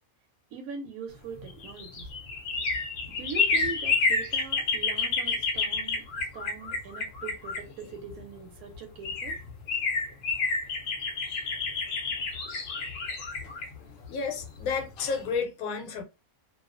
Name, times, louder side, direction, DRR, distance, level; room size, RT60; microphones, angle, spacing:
voice 1, 0.5-2.1 3.1-9.4, right 5 dB, 85° right, 1.1 m, -41 dB
sound 1, 1.4-8.2 8.7-8.8 9.0-14.8 15.2-15.3, left 4 dB, 60° left, 0.7 m, -29 dB
voice 2, 14.1-16.0, left 5 dB, 80° left, 1.0 m, -31 dB
2.4 x 2.3 x 2.4 m
omnidirectional pair, 1.5 m